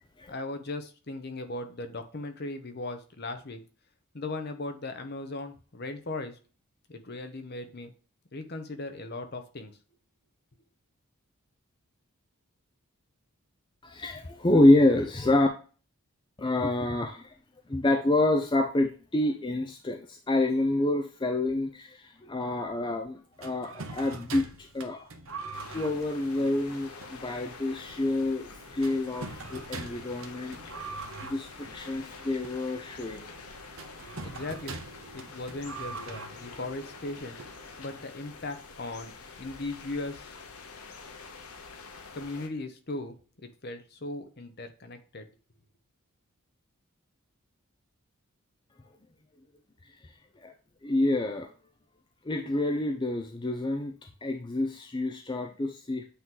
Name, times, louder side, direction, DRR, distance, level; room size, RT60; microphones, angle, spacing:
voice 1, 0.3-3.6 4.1-6.4 6.9-7.9 8.3-9.7 34.1-34.8 35.1-37.4 37.8-39.1 39.4-40.3 42.1-43.2 43.6-45.3, left 2 dB, 45° left, 7 dB, 0.9 m, -38 dB
voice 2, 13.8-15.5 16.4-17.3 17.7-25.1 25.7-30.6 31.3-33.2 50.0-50.1 50.4-50.5 50.8-51.5 52.2-53.9 54.2-56.0, left 2 dB, 20° left, 3 dB, 0.5 m, -27 dB
sound 1, 23.4-38.1, right 3 dB, 65° right, 0.9 m, -44 dB
sound 2, 25.5-42.5, left 4 dB, 80° left, 0.9 m, -47 dB
8.3 x 3.0 x 3.8 m, 0.36 s
head